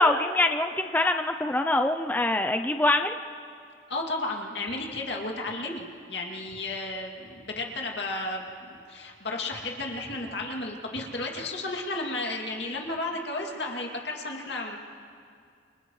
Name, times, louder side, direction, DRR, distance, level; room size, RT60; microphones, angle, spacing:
voice 1, 0.0-3.1, left 2 dB, 10° left, 6 dB, 0.4 m, -24 dB
voice 2, 3.9-14.8, left 2 dB, 65° left, 0 dB, 2.5 m, -33 dB
29.5 x 29.0 x 3.2 m, 2.4 s
head